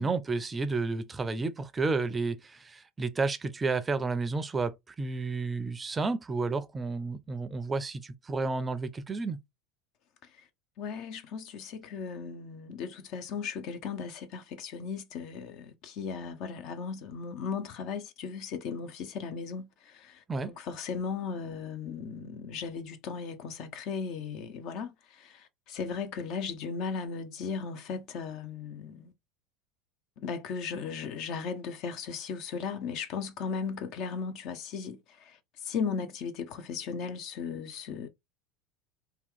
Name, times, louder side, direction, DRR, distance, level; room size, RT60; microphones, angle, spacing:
voice 1, 0.0-9.4 20.3-20.5, right 3 dB, 20° right, 0.5 m, -31 dB
voice 2, 10.8-29.1 30.2-38.1, left 5 dB, 55° left, 0.6 m, -37 dB
2.9 x 2.3 x 3.6 m
hypercardioid pair, 75°, 0 cm